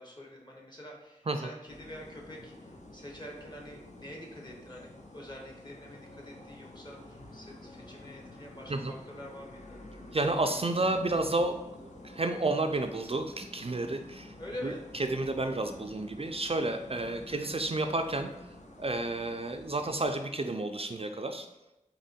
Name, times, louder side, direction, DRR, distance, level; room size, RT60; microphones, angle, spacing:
voice 1, 0.0-9.8 14.4-14.8 17.4-17.5, equal, 30° left, -1 dB, 1.2 m, -46 dB
sound 1, 1.7-20.1, left 1 dB, 60° left, 0.7 m, -50 dB
voice 2, 10.1-11.6 12.0-14.3 14.6-18.3 18.8-21.5, right 2 dB, 45° right, 6 dB, 0.4 m, -31 dB
4.4 x 2.9 x 4.2 m, 0.93 s
wide cardioid pair, 40°, 14 cm